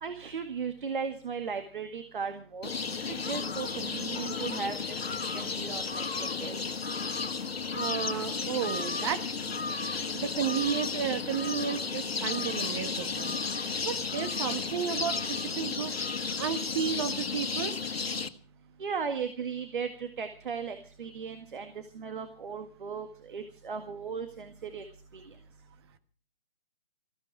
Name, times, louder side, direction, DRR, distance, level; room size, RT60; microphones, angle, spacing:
voice 1, 0.0-2.7 3.1-4.8 5.3-6.6 18.8-24.9 25.1-25.2, right 6 dB, 60° right, 7 dB, 1.9 m, -36 dB
sound 1, 2.6-18.3, left 5 dB, 85° left, 1.6 m, -33 dB
voice 2, 7.7-9.2 10.1-13.4 13.8-15.9 16.4-17.7, right 8 dB, 25° right, 10 dB, 1.3 m, -33 dB
20.0 x 15.0 x 4.8 m, 0.41 s
hypercardioid pair, 155°, 30 cm